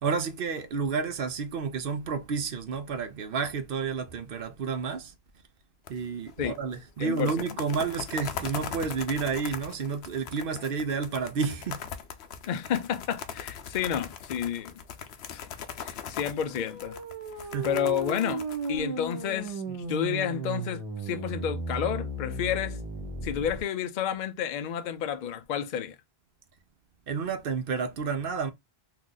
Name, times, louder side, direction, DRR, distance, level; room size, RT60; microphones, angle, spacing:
voice 1, 0.0-5.1 5.9-11.9 17.5-17.7 27.1-28.5, right 5 dB, 65° right, 0.8 m, -30 dB
sound 1, 5.9-6.3 6.6-6.7 7.0-19.5, left 8 dB, 85° left, 0.8 m, -40 dB
voice 2, 7.0-7.5 12.5-14.7 15.3-15.4 15.8-16.9 17.6-18.4 18.7-22.8 23.2-26.0, left 9 dB, 55° left, 0.6 m, -30 dB
sound 2, 16.5-23.6, right 3 dB, 35° right, 1.0 m, -35 dB
2.8 x 2.4 x 3.7 m
omnidirectional pair, 1.0 m